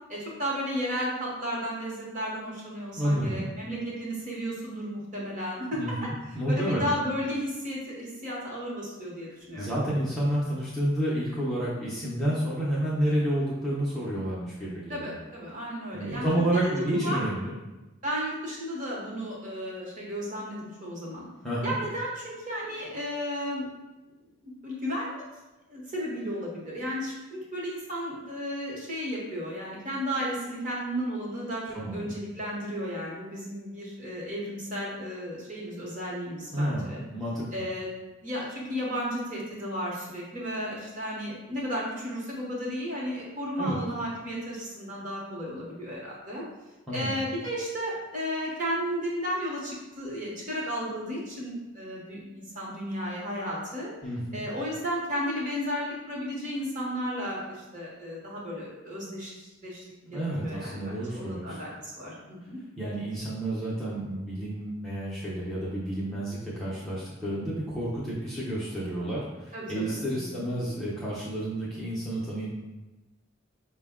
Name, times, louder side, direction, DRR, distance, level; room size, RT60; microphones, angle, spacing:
voice 1, 0.1-9.7 14.9-16.2 16.5-17.2 18.0-21.3 21.6-23.7 24.4-25.2 25.7-37.0 37.5-37.9 38.2-46.4 46.9-53.9 54.3-59.8 60.1-62.6 69.5-70.4, equal, 35° right, -4 dB, 1.0 m, -34 dB
voice 2, 3.0-3.4 5.7-6.9 9.6-15.1 15.9-17.5 21.4-21.7 31.7-32.1 36.5-37.5 43.6-43.8 46.9-47.2 54.0-54.4 60.0-61.6 62.8-72.5, right 1 dB, ahead, -8 dB, 0.6 m, -30 dB
5.1 x 2.2 x 3.5 m, 1.1 s
head